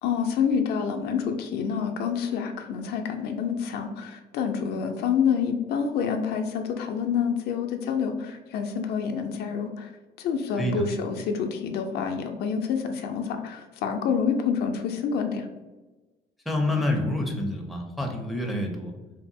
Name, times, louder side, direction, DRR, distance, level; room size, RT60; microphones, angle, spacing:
voice 1, 0.0-9.9 10.2-15.5, left 6 dB, 70° left, 4 dB, 0.4 m, -27 dB
voice 2, 16.5-18.9, left 1 dB, ahead, 1 dB, 0.4 m, -27 dB
2.7 x 2.5 x 2.6 m, 1.2 s
cardioid pair, 110°, 17 cm